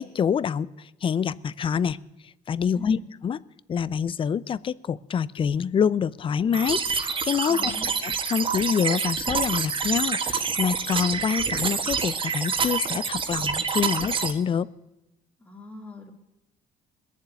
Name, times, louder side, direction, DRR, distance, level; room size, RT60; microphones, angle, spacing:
voice 1, 0.0-2.0 2.5-3.0 3.2-3.4 3.7-7.7 8.0-14.7, left 7 dB, 35° left, 20 dB, 0.5 m, -26 dB
voice 2, 2.7-3.1 7.5-7.9 15.4-16.1, left 2 dB, 10° left, 0 dB, 2.5 m, -40 dB
sound 1, 6.5-14.3, right 5 dB, 35° right, 1.4 m, -27 dB
21.5 x 7.3 x 9.2 m, 0.95 s
cardioid pair, 120°, 15 cm